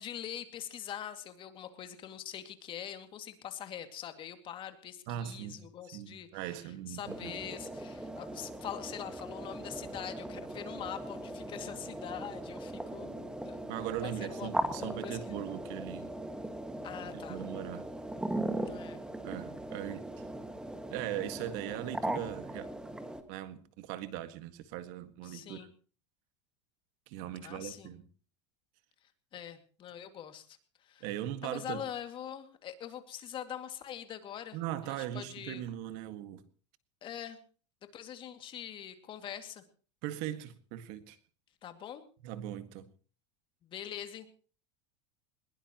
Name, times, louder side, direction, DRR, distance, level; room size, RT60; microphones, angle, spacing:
voice 1, 0.0-13.6 14.0-15.4 16.8-17.4 18.7-19.0 25.2-25.7 27.4-27.9 29.3-31.0 31.4-34.6 34.8-35.6 37.0-37.4 37.9-39.6 41.6-42.0 43.6-44.3, left 10 dB, 30° left, 2.3 m, -43 dB
voice 2, 5.1-5.6 5.9-7.3 13.7-16.1 17.1-17.9 19.2-20.3 20.9-22.8 23.3-25.7 27.1-28.0 31.0-31.8 34.5-36.4 40.0-41.2 42.2-42.9, right 12 dB, 55° right, 1.8 m, -39 dB
sound 1, 7.1-23.2, right 1 dB, 5° right, 1.8 m, -39 dB
21.5 x 21.5 x 3.0 m
supercardioid pair, 145°, 16 cm